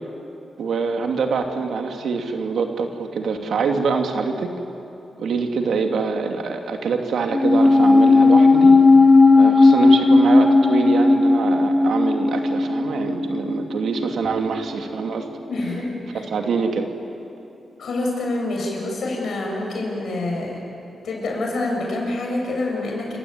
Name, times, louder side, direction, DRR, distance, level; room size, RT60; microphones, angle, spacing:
voice 1, 0.6-4.6 5.2-8.8 9.3-15.3 16.3-16.9, right 5 dB, 75° right, 4 dB, 2.4 m, -25 dB
sound 1, 7.3-13.9 14.1-14.2, left 3 dB, 25° left, 4.1 m, -14 dB
voice 2, 15.5-16.2 17.8-20.6 21.0-23.2, left 2 dB, 70° left, 0 dB, 7.1 m, -26 dB
28.5 x 16.0 x 9.9 m, 2.8 s
cardioid pair, 90°, 0 cm